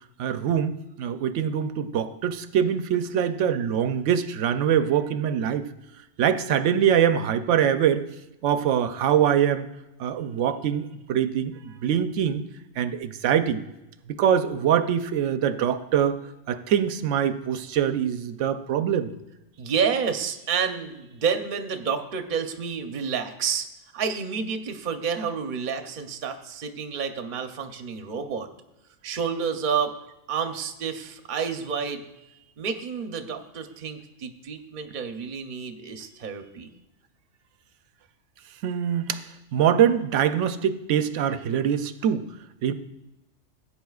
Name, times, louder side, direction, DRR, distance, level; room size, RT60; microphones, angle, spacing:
voice 1, 0.2-0.7 1.0-5.7 6.2-8.0 8.4-9.7 10.0-12.4 12.8-13.6 14.2-16.2 16.5-19.1 38.6-39.2 39.5-42.3 42.6-42.7, right 9 dB, 80° right, 11 dB, 0.9 m, -23 dB
voice 2, 19.6-23.7 23.9-28.5 29.0-29.9 30.3-32.0 32.6-36.7, right 6 dB, 45° right, 6 dB, 0.7 m, -29 dB
16.0 x 8.5 x 2.4 m, 0.94 s
omnidirectional pair, 1.3 m